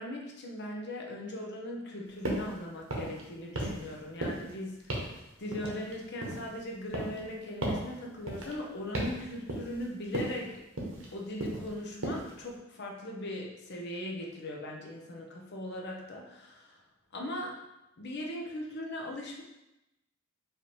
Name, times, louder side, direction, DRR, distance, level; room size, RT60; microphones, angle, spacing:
voice 1, 0.0-4.8 5.1-10.6 11.1-16.8 17.1-17.5 18.0-19.4, left 1 dB, 55° left, -1 dB, 0.8 m, -39 dB
sound 1, 2.2-2.5 2.8-3.2 3.5-3.9 4.2-4.5 4.9-5.2 5.5-6.5 6.9-7.2 7.6-7.9 8.3-8.5 8.9-9.2 9.5-9.8 10.1-10.4 10.8-11.1 11.4-11.7 12.0-12.3, right 1 dB, 75° right, 1.0 m, -35 dB
4.8 x 2.8 x 3.2 m, 0.93 s
head